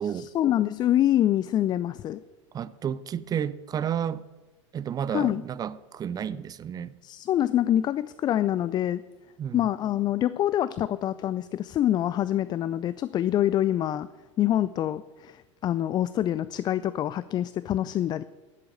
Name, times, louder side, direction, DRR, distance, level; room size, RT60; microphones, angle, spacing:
voice 1, 0.1-2.2 5.1-5.4 7.0-9.0 9.5-14.1 14.4-18.2, left 12 dB, 25° left, 0.4 m, -25 dB
voice 2, 2.5-4.2 4.7-6.9 9.4-9.6, right 8 dB, 25° right, 0.6 m, -31 dB
11.5 x 8.3 x 8.7 m
figure-of-eight pair, 80°, 16 cm